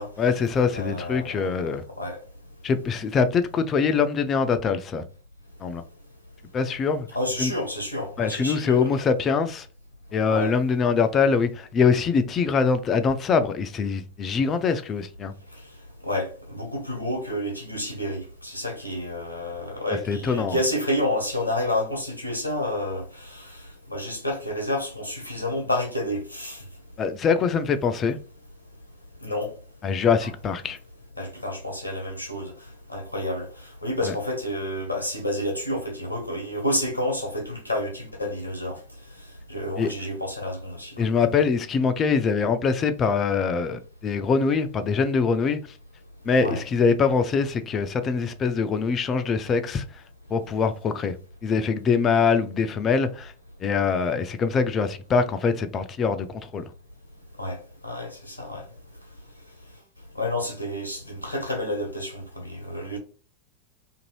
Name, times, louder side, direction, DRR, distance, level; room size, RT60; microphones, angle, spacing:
voice 1, 0.2-1.8 2.6-5.0 5.6-5.8 6.5-7.1 7.4-7.5 8.2-9.7 10.1-15.3 20.1-20.6 27.0-28.2 29.8-30.8 34.0-34.1 39.8-39.9 41.0-45.7 46.3-49.8 50.3-51.2 51.4-53.3 53.6-56.6, left 5 dB, 25° left, 0.4 m, -23 dB
voice 2, 0.7-1.6 2.0-2.2 7.1-9.0 10.3-10.5 16.0-23.6 23.9-26.6 29.2-29.5 31.2-32.5 32.9-38.8 39.5-41.1 46.4-46.6 57.4-57.6 57.8-58.6 60.1-63.0, left 1 dB, 85° left, 0.7 m, -29 dB
2.6 x 2.6 x 3.0 m
figure-of-eight pair, 90°, 0 cm